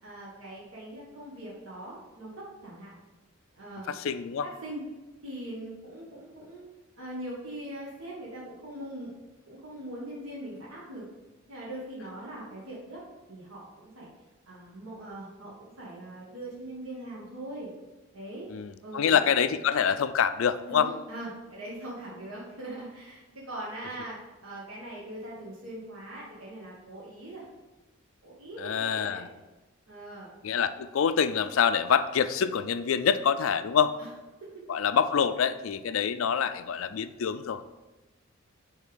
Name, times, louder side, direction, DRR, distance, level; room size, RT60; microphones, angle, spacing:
voice 1, 0.0-2.9 3.5-3.9 4.4-4.8 5.2-6.6 7.0-9.1 9.5-11.1 11.5-13.0 13.3-14.1 14.5-17.7 18.1-18.5 18.8-19.2 20.7-27.4 28.2-29.3 29.9-30.3 34.0-34.1 34.4-34.5, right 1 dB, 80° right, -6 dB, 1.5 m, -41 dB
voice 2, 3.9-4.5 18.5-20.9 28.6-29.3 30.4-33.9 34.7-37.7, left 7 dB, 70° left, 12 dB, 0.4 m, -26 dB
6.4 x 3.4 x 5.1 m, 1.1 s
head